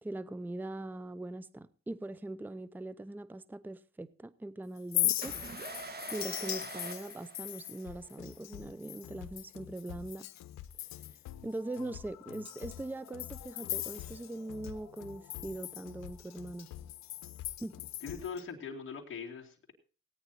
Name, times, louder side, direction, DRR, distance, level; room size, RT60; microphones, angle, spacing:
voice 1, 0.0-5.3 6.1-10.3 11.4-16.7 17.6-17.7, right 2 dB, 5° right, 0.6 m, -41 dB
Chink clink, 4.8-10.4 10.7-11.3 11.7-11.8 12.3-14.7 15.0-18.4, left 14 dB, 65° left, 0.6 m, -39 dB
sound 1, 5.2-8.0, right 3 dB, 30° right, 1.5 m, -44 dB
sound 2, 7.9-18.4, left 12 dB, 85° left, 1.0 m, -49 dB
voice 2, 18.0-19.7, left 6 dB, 40° left, 2.7 m, -41 dB
17.0 x 9.5 x 4.2 m
cardioid pair, 90°, 30 cm